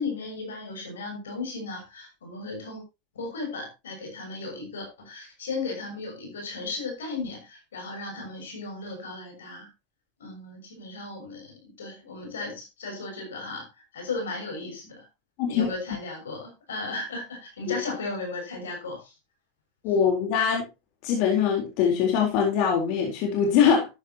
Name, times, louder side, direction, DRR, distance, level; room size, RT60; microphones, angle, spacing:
voice 1, 0.0-2.8 3.1-9.7 10.2-13.7 13.9-15.1 15.5-19.1, left 3 dB, 90° left, 3 dB, 6.5 m, -35 dB
voice 2, 19.8-20.6 21.0-23.9, left 7 dB, 60° left, 1 dB, 4.0 m, -22 dB
13.0 x 10.5 x 3.0 m, 0.25 s
hypercardioid pair, 100°, 0 cm